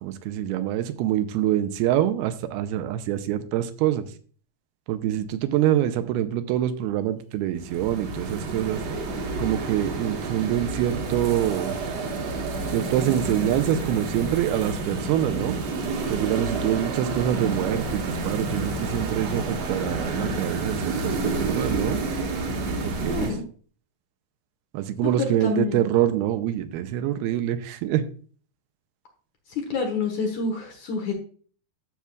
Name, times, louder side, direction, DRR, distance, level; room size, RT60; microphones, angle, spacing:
voice 1, 0.0-4.1 4.9-8.8 9.4-11.8 12.7-15.6 16.1-22.0 22.8-23.3 24.7-28.1, right 12 dB, 85° right, 9 dB, 2.5 m, -25 dB
sound 1, 7.6-23.3, right 3 dB, 60° right, 1.9 m, -29 dB
voice 2, 23.1-23.4 25.0-25.9 29.5-31.1, left 4 dB, 60° left, 3 dB, 2.2 m, -28 dB
12.0 x 7.0 x 2.3 m, 0.43 s
omnidirectional pair, 4.5 m